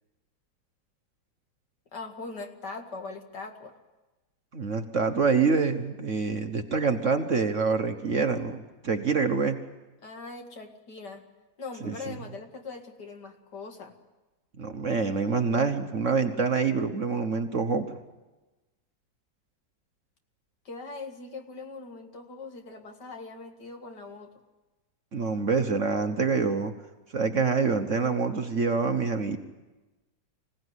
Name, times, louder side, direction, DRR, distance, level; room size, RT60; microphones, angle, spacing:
voice 1, 1.9-3.7 10.0-11.2 11.6-14.0 20.6-24.3, left 3 dB, 65° left, 4 dB, 2.5 m, -41 dB
voice 2, 4.5-9.6 11.8-12.2 14.6-18.0 25.1-26.7 27.1-29.4, right 5 dB, 45° right, 6 dB, 1.3 m, -26 dB
25.5 x 17.0 x 9.9 m, 1.2 s
omnidirectional pair, 2.0 m